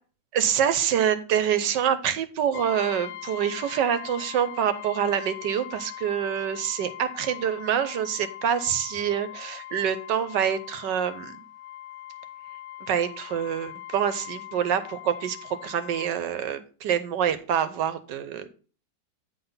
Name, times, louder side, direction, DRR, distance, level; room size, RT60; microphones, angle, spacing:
voice 1, 0.3-11.4 12.8-18.5, right 8 dB, 75° right, 12 dB, 1.3 m, -26 dB
Brass instrument, 2.5-16.2, left 14 dB, 70° left, 0.9 m, -41 dB
9.2 x 4.0 x 5.4 m, 0.38 s
omnidirectional pair, 2.0 m